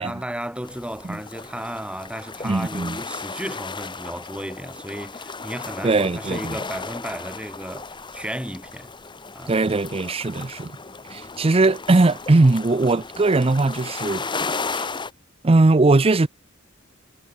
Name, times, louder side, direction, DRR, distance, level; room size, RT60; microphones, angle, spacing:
voice 1, 0.0-8.9 9.4-9.5, right 1 dB, 5° right, 5.1 m, -34 dB
sound 1, 0.6-15.1, left 4 dB, 25° left, 1.4 m, -35 dB
voice 2, 2.4-3.0 5.8-6.6 9.5-10.7 11.1-14.3 14.7-14.9 15.4-16.3, right 2 dB, 30° right, 0.6 m, -19 dB
head